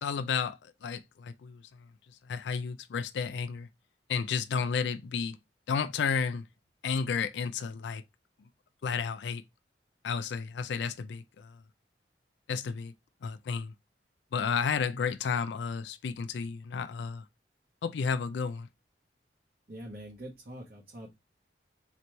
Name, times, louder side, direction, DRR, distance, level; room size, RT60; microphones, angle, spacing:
voice 1, 0.0-3.7 4.1-5.4 5.7-6.4 6.8-8.0 8.8-9.4 10.0-11.6 12.5-12.9 13.2-13.7 14.3-17.3 17.8-18.7, left 6 dB, 75° left, 0.4 m, -32 dB
voice 2, 19.7-21.1, right 1 dB, 55° right, 1.1 m, -44 dB
4.0 x 3.0 x 3.2 m
head